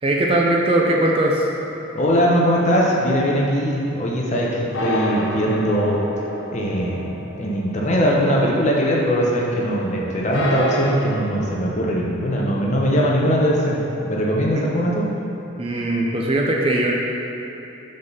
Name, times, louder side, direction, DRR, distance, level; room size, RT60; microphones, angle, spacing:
voice 1, 0.0-1.5 12.5-12.6 14.5-14.6 15.6-16.9, right 1 dB, 25° right, -2 dB, 0.4 m, -20 dB
sound 1, 1.2-2.7 4.7-8.9 9.1-9.2 10.3-11.0, equal, 70° left, 0.8 m, -28 dB
voice 2, 1.9-6.0 6.5-13.8 14.1-15.0, equal, 35° left, -3 dB, 0.8 m, -20 dB
5.1 x 4.0 x 5.5 m, 3.0 s
head